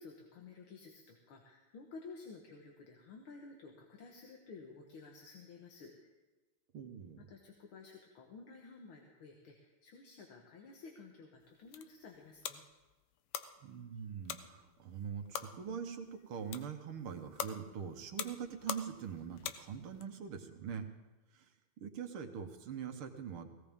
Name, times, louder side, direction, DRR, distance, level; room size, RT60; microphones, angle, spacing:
voice 1, 0.0-5.9 7.2-12.6, left 4 dB, 75° left, 1 dB, 2.2 m, -53 dB
voice 2, 6.7-7.3 13.6-20.9 21.3-21.5 21.8-23.5, right 7 dB, 80° right, 5 dB, 2.1 m, -43 dB
sound 1, 11.4-20.1, left 9 dB, 90° left, 1.7 m, -46 dB
17.5 x 17.0 x 3.6 m, 1.2 s
omnidirectional pair, 2.4 m